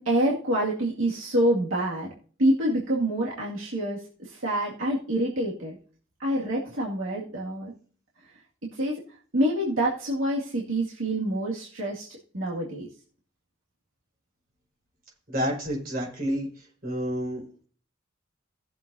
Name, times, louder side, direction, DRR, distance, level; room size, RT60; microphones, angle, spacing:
voice 1, 0.0-2.1 2.4-5.8 6.2-7.7 8.7-9.0 9.3-12.1 12.3-12.9, right 1 dB, 80° right, -5 dB, 2.3 m, -26 dB
voice 2, 15.3-16.5 16.8-17.4, equal, 50° right, -1 dB, 5.3 m, -29 dB
18.5 x 7.3 x 2.8 m, 0.44 s
head